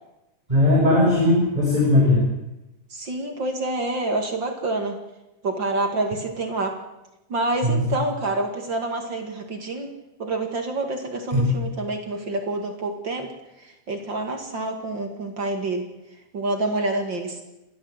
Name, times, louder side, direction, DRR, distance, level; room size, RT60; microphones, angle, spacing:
voice 1, 0.5-2.2 7.6-7.9 11.3-11.5, left 1 dB, 10° right, -5 dB, 6.9 m, -18 dB
voice 2, 2.9-5.0 5.4-6.8 7.3-9.9 10.2-13.3 13.6-15.9 16.3-17.4, right 2 dB, 40° right, 4 dB, 2.5 m, -27 dB
28.5 x 13.0 x 8.0 m, 0.96 s
omnidirectional pair, 3.6 m